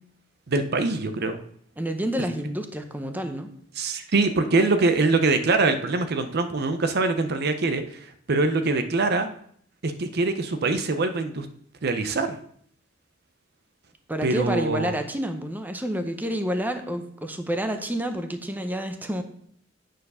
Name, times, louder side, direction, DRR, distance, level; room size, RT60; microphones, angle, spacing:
voice 1, 0.5-1.4 3.8-9.3 9.8-11.5 11.8-12.4 14.2-14.9, right 3 dB, 55° right, 9 dB, 0.6 m, -23 dB
voice 2, 1.8-3.5 14.1-19.2, equal, 10° right, 6 dB, 0.8 m, -29 dB
9.1 x 4.6 x 5.5 m, 0.64 s
head